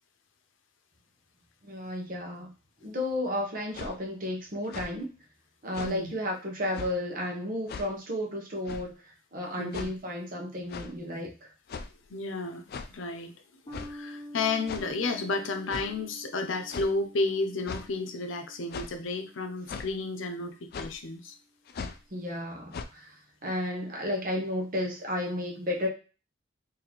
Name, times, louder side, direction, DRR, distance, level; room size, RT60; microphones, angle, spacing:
voice 1, 1.6-2.5 2.8-5.1 5.6-11.3 22.1-23.2 23.4-25.9, left 1 dB, 45° right, 0 dB, 0.9 m, -33 dB
sound 1, 3.7-3.9 4.6-4.9 5.7-6.0 6.7-6.9 7.7-7.9 8.7-8.9 9.7-9.9 10.7-10.9 11.7-12.0 12.7-12.9 13.7-13.9 14.7-14.9 15.7-15.9 16.7-16.9 17.7-17.9 18.7-19.0 19.7-19.9 20.7-20.9 21.7-22.0 22.7-22.9, left 4 dB, 55° left, 0.4 m, -38 dB
voice 2, 9.6-9.9 12.1-12.6 12.9-13.3 13.9-21.4, left 3 dB, 90° left, 6 dB, 0.6 m, -32 dB
sound 2, 13.7-20.4, equal, 25° left, 1.1 m, -48 dB
4.0 x 2.8 x 3.0 m, 0.33 s
head